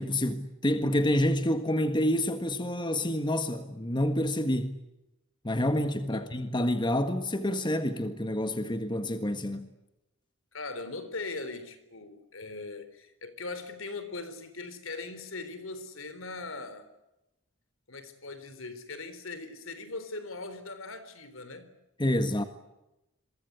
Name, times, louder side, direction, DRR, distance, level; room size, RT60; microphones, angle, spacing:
voice 1, 0.0-4.8 5.4-9.7 22.0-22.4, left 1 dB, 20° left, 1.6 m, -28 dB
voice 2, 10.5-16.9 17.9-21.7, left 3 dB, 70° left, 3.9 m, -40 dB
28.0 x 23.5 x 8.2 m
head